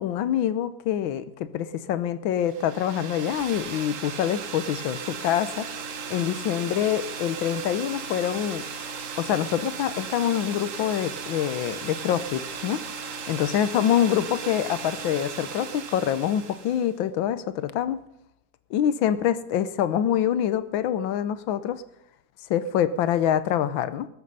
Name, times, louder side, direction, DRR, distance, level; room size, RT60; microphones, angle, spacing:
voice 1, 0.0-5.7 6.1-8.6 9.2-12.8 13.3-18.0 18.7-21.8 22.5-24.1, left 10 dB, 85° left, 14 dB, 1.6 m, -25 dB
sound 1, 2.4-16.9, right 6 dB, 50° right, 1.1 m, -36 dB
20.0 x 8.7 x 5.4 m, 0.78 s
omnidirectional pair, 2.1 m